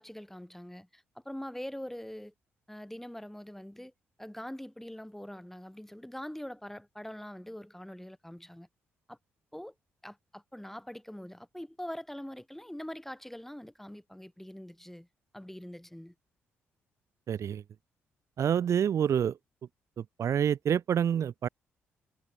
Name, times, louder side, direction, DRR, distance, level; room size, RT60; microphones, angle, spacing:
voice 1, 0.0-2.3 2.7-3.9 4.2-8.7 9.1-9.2 9.5-9.7 10.0-15.1 15.3-16.1, equal, 5° left, 1.5 m, -43 dB
voice 2, 17.3-17.6 18.4-19.4 20.0-21.5, right 8 dB, 50° right, 0.7 m, -27 dB
figure-of-eight pair, 40°, 6 cm